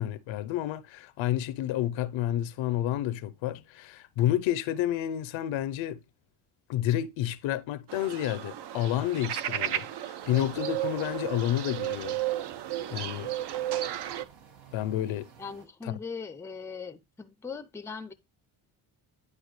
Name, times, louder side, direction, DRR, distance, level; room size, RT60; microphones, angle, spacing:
voice 1, 0.0-6.0 6.7-12.2 12.9-13.3 14.7-15.2, left 12 dB, 75° left, 0.7 m, -30 dB
sound 1, 7.9-14.3, right 12 dB, 60° right, 0.7 m, -33 dB
sound 2, 10.2-15.7, right 6 dB, 90° right, 1.8 m, -53 dB
voice 2, 15.4-18.1, left 5 dB, 5° left, 0.5 m, -40 dB
9.8 x 4.6 x 3.1 m
cardioid pair, 115°, 46 cm